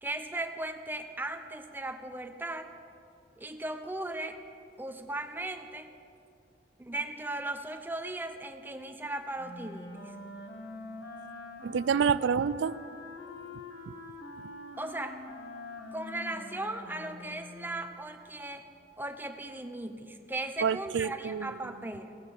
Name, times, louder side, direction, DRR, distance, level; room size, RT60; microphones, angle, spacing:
voice 1, 0.0-2.7 3.4-4.4 4.8-5.9 6.8-10.2 14.8-15.2 15.9-18.6 19.0-22.2, right 2 dB, 10° right, 7 dB, 0.7 m, -37 dB
Wind instrument woodwind instrument, 9.4-17.9, left 2 dB, 60° left, 1.5 m, -45 dB
voice 2, 11.6-12.8 13.9-14.0 20.6-21.6, right 6 dB, 90° right, 18 dB, 0.4 m, -28 dB
16.5 x 8.2 x 6.8 m, 2.7 s
head